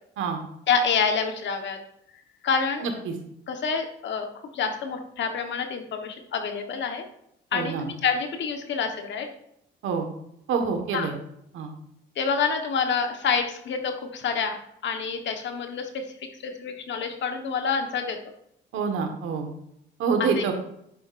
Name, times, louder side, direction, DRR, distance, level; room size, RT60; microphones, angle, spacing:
voice 1, 0.7-1.8 2.4-2.9 3.5-4.3 4.5-7.0 7.5-9.3 10.9-11.1 12.2-16.1 16.4-18.2 20.2-20.4, left 5 dB, 65° left, 5 dB, 1.3 m, -27 dB
voice 2, 2.8-3.1 7.5-7.9 9.8-10.1 10.5-11.1 11.5-11.7 18.7-19.5 20.0-20.5, right 5 dB, 80° right, 4 dB, 1.5 m, -26 dB
10.0 x 7.7 x 2.6 m, 0.75 s
cardioid pair, 90°, 20 cm